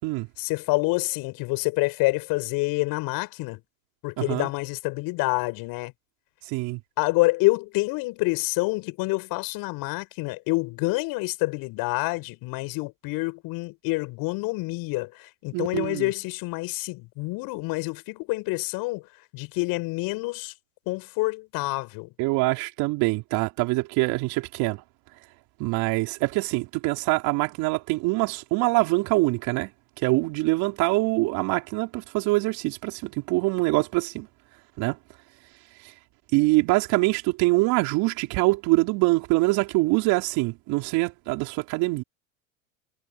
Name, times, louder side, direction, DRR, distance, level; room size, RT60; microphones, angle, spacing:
voice 1, 0.4-3.6 4.0-5.9 7.0-19.0 19.3-20.5 20.9-22.1, left 24 dB, 55° left, 7.6 m, -27 dB
voice 2, 4.2-4.5 6.4-6.8 15.5-16.1 22.2-24.8 25.6-29.7 30.0-34.3 34.8-35.0 35.8-35.9 36.3-42.0, right 24 dB, 60° right, 4.5 m, -24 dB
hypercardioid pair, 100°, 41 cm